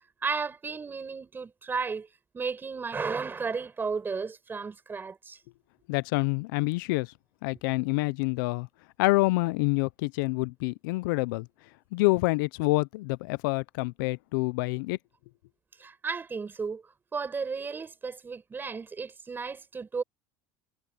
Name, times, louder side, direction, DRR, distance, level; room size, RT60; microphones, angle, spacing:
voice 1, 0.2-2.1 2.3-5.4 15.8-20.0, right 5 dB, 20° right, 6.9 m, -34 dB
voice 2, 5.9-7.1 7.4-8.7 9.0-11.5 11.9-15.0, left 24 dB, 85° left, 0.5 m, -27 dB
supercardioid pair, 135°, 11 cm